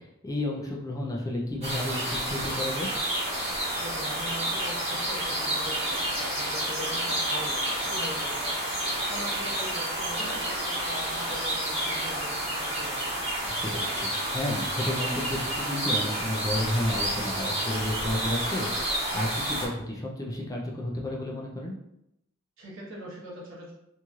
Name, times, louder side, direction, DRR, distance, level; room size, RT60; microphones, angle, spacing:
voice 1, 0.0-2.9 13.6-21.8, left 1 dB, 20° left, -1 dB, 0.4 m, -32 dB
sound 1, 1.6-19.7, right 1 dB, 30° right, 1.1 m, -30 dB
voice 2, 3.8-13.1 22.6-23.7, equal, 70° right, -4 dB, 1.0 m, -41 dB
3.0 x 2.7 x 2.4 m, 0.80 s
head